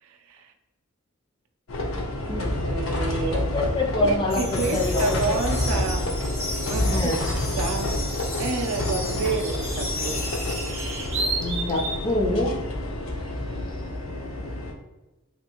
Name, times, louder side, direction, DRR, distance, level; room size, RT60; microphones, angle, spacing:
voice 1, 0.0-0.5 2.3-3.5 4.0-6.2 6.7-7.1 7.6-8.1 8.4-10.3, right 4 dB, 85° right, 4 dB, 0.4 m, -30 dB
sound 1, 1.7-14.7, left 1 dB, 75° left, 0.6 m, -28 dB
sound 2, 3.1-3.3 5.8-5.9 7.5-12.1, right 3 dB, 60° right, 0.7 m, -33 dB
voice 2, 3.3-5.4 6.8-7.2 11.4-12.6, left 2 dB, 25° left, 1 dB, 0.4 m, -26 dB
sound 3, 4.3-11.1, left 2 dB, 90° left, 1.5 m, -35 dB
3.5 x 2.4 x 2.9 m, 1.1 s
head